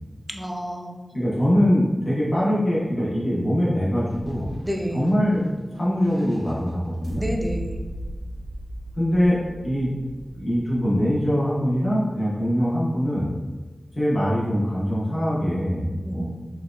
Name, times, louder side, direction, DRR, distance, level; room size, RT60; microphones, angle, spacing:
voice 1, 0.3-1.0 4.6-5.1 7.2-7.8 16.1-16.5, equal, 5° right, 1 dB, 0.4 m, -30 dB
voice 2, 1.1-4.5 4.9-5.5 5.7-7.2 9.0-9.4 9.6-10.1 10.4-13.3 13.9-16.3, equal, 50° left, -8 dB, 0.9 m, -23 dB
sound 1, 4.1-12.1, right 1 dB, 80° right, 0.6 m, -38 dB
4.3 x 2.3 x 2.5 m, 1.3 s
wide cardioid pair, 85°, 0 cm